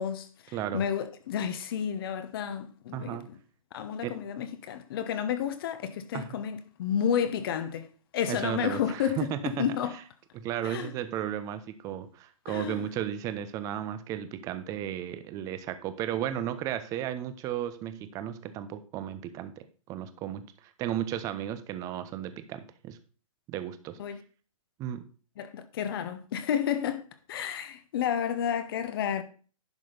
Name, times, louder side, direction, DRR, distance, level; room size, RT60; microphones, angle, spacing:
voice 1, 0.0-3.4 3.7-10.0 10.6-10.9 12.5-12.9 24.0-24.2 25.4-27.0 27.3-29.2, left 8 dB, 40° left, 1.0 m, -31 dB
voice 2, 0.5-0.8 2.9-3.3 4.0-4.2 6.1-6.4 8.3-9.6 10.3-20.5 20.8-23.0 23.5-24.0 24.8-25.1, right 10 dB, 20° right, 0.7 m, -34 dB
10.5 x 6.1 x 4.0 m
hypercardioid pair, 135°, 18 cm